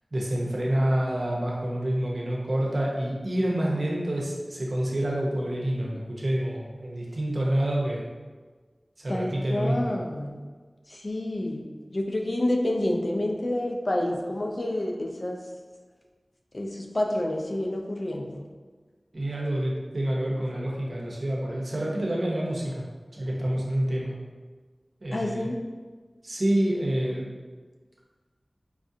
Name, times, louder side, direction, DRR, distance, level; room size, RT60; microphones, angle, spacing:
voice 1, 0.1-8.1 9.0-10.0 19.1-22.8 23.1-24.1 25.0-25.5 26.2-27.3, right 1 dB, 65° right, -3 dB, 0.7 m, -27 dB
voice 2, 9.1-10.4 10.9-11.6 11.9-15.4 16.5-18.4 25.1-25.6, left 1 dB, 55° left, 1 dB, 0.5 m, -28 dB
4.6 x 2.4 x 2.7 m, 1.4 s
wide cardioid pair, 40°, 0 cm